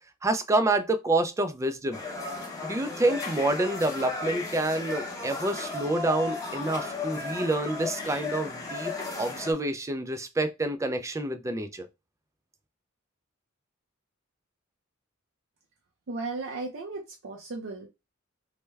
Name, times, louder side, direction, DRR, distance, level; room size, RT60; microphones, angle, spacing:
voice 1, 0.2-2.0 2.6-11.9, right 2 dB, 15° right, 0.3 m, -28 dB
sound 1, 1.9-9.5, left 3 dB, 15° left, 0.8 m, -35 dB
voice 2, 16.1-17.9, right 3 dB, 65° right, 0.6 m, -35 dB
3.3 x 2.1 x 3.2 m
head